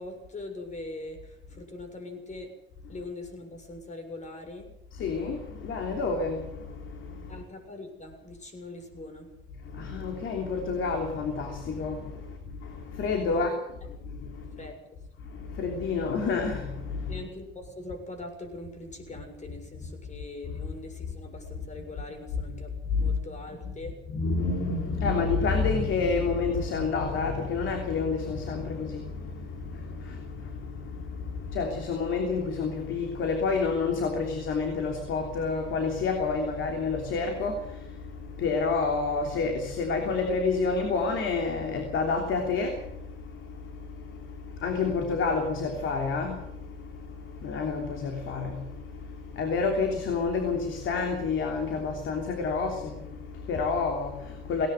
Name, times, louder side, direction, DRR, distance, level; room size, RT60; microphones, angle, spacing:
voice 1, 0.0-2.5 2.9-4.7 7.3-9.4 13.3-13.6 14.6-15.0 17.1-24.0, left 2 dB, 35° left, 7.0 m, -42 dB
voice 2, 4.9-7.4 9.6-13.5 14.0-14.6 15.2-17.2 22.9-23.1 24.1-54.7, left 4 dB, 80° left, 3.2 m, -29 dB
18.5 x 18.0 x 8.0 m
cardioid pair, 90°, 20 cm